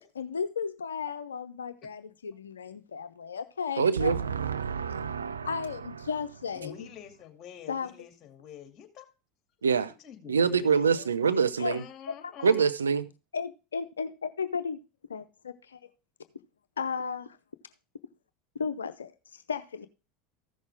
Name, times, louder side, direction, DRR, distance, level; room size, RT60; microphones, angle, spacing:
voice 1, 0.2-4.2 4.7-5.0 5.4-6.9 7.7-7.9 11.6-11.8 12.1-12.3 13.3-14.8 15.1-15.8 16.8-17.4 18.5-19.9, left 6 dB, 85° left, 0.6 m, -35 dB
voice 2, 3.8-5.7 9.6-9.9 10.3-11.8 12.4-13.1, right 6 dB, 85° right, 0.7 m, -25 dB
voice 3, 6.5-9.1 9.9-12.7, left 9 dB, 40° left, 2.4 m, -47 dB
14.5 x 6.4 x 3.4 m
hypercardioid pair, 80°, 0 cm